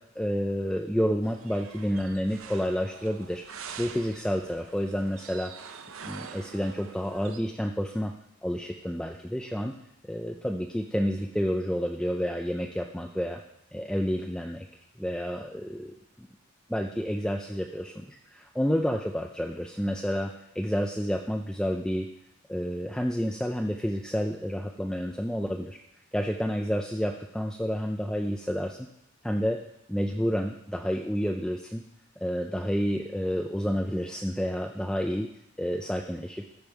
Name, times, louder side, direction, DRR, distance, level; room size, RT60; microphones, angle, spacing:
voice 1, 0.2-3.4 3.8-5.8 6.0-8.1 8.4-9.7 10.0-13.4 13.7-14.7 15.0-15.9 16.7-22.1 22.5-25.8 26.1-28.9 29.2-29.6 29.9-31.8 32.2-35.3 35.6-36.4, equal, 5° left, 2 dB, 0.4 m, -29 dB
sound 1, 1.2-7.4, right 6 dB, 85° right, 0.7 m, -45 dB
14.0 x 5.2 x 4.6 m, 0.81 s
head